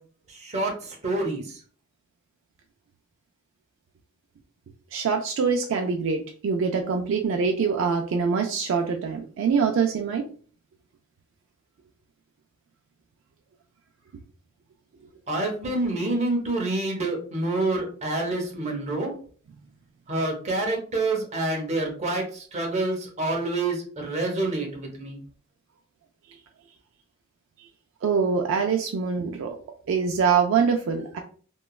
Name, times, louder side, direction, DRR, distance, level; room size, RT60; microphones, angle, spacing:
voice 1, 0.4-1.4 15.3-19.1 20.1-25.2, right 2 dB, 30° right, 1 dB, 0.7 m, -27 dB
voice 2, 4.9-10.3 28.0-29.6 29.9-31.2, right 5 dB, 60° right, 3 dB, 0.3 m, -24 dB
3.0 x 2.2 x 2.3 m, 0.43 s
head